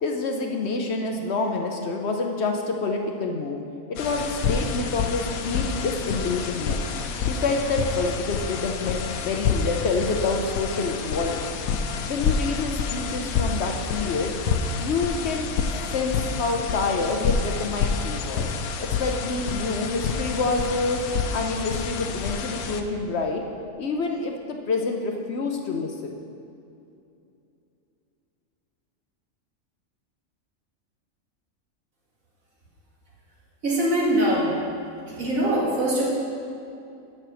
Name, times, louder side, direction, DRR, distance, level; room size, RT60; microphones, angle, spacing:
voice 1, 0.0-3.6 3.9-6.8 7.3-11.6 12.1-14.3 14.8-15.5 15.9-18.5 18.8-21.0 21.3-23.4 23.8-26.2, left 3 dB, 60° left, 2 dB, 0.9 m, -27 dB
sound 1, 4.0-22.8, left 5 dB, 90° left, 1.1 m, -28 dB
voice 2, 33.6-34.6 35.1-36.1, right 1 dB, 75° right, -6 dB, 2.3 m, -22 dB
7.4 x 6.8 x 6.2 m, 2.6 s
omnidirectional pair, 1.4 m